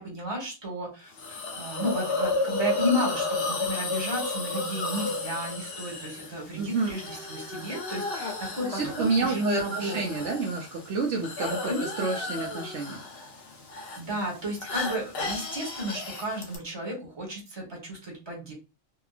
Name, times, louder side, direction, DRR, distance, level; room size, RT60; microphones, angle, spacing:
voice 1, 0.0-10.3 11.4-11.9 14.0-18.5, equal, 20° right, -2 dB, 1.1 m, -33 dB
Hiss, 1.2-16.6, left 3 dB, 55° left, 0.7 m, -33 dB
voice 2, 6.6-6.9 8.7-11.7 12.0-13.0, right 4 dB, 65° right, 0 dB, 0.9 m, -29 dB
2.8 x 2.3 x 2.4 m, 0.30 s
omnidirectional pair, 1.4 m